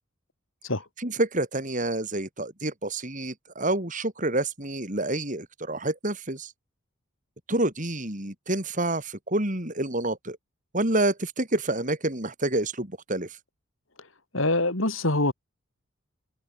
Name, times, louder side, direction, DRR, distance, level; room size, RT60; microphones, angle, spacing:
voice 1, 1.0-6.5 7.5-10.4 10.7-13.4, right 2 dB, 35° right, 4.6 m, -28 dB
voice 2, 14.3-15.3, left 2 dB, 65° left, 4.4 m, -24 dB
open air
head